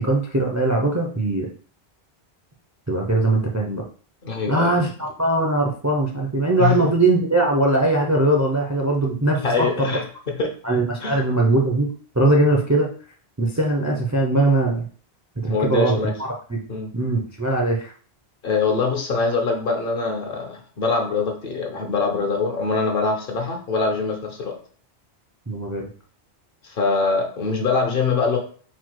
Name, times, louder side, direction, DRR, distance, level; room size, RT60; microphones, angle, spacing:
voice 1, 0.0-1.5 2.9-3.8 4.5-4.9 5.2-9.9 10.6-11.9 12.1-12.9 13.4-14.9 15.4-16.6 16.9-17.9 25.5-25.9, right 2 dB, 25° right, 0 dB, 0.4 m, -20 dB
voice 2, 4.2-4.7 6.6-6.8 9.3-10.5 11.0-11.2 15.5-16.1 16.7-16.9 18.4-24.6 26.6-28.4, left 4 dB, 60° left, 2 dB, 1.0 m, -23 dB
4.1 x 2.2 x 4.6 m, 0.43 s
omnidirectional pair, 1.1 m